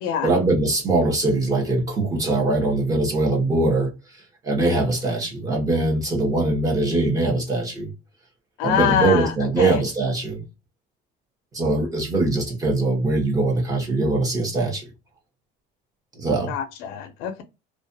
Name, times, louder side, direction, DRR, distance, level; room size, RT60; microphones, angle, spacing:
voice 1, 0.2-3.9 4.4-7.9 8.6-10.4 11.5-14.8 16.1-16.5, right 2 dB, 15° right, 0.8 m, -22 dB
voice 2, 8.6-9.3 9.6-9.8 16.5-17.4, left 8 dB, 75° left, 0.5 m, -24 dB
2.3 x 2.2 x 2.5 m
cardioid pair, 165°, 20 cm